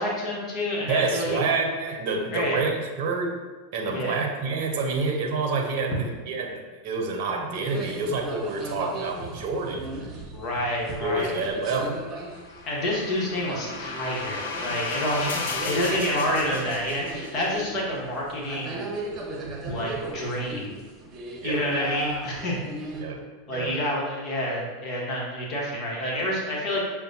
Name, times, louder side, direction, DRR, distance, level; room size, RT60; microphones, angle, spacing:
voice 1, 0.0-1.4 2.3-2.6 3.9-4.2 10.3-11.3 12.7-18.8 19.7-20.7 21.4-22.6 23.5-26.8, left 1 dB, 45° left, -3 dB, 1.2 m, -28 dB
voice 2, 0.9-3.4 3.7-6.5 6.8-9.8 11.0-12.0 15.1-15.3 15.9-16.0 21.4-21.6 23.0-23.2 23.5-23.8, right 3 dB, 60° right, 2 dB, 0.7 m, -28 dB
sound 1, 7.6-23.0, right 2 dB, 30° right, 0.9 m, -37 dB
sound 2, 12.2-17.5, left 4 dB, 70° left, 0.5 m, -34 dB
6.5 x 2.2 x 2.7 m, 1.3 s
hypercardioid pair, 90°, 0 cm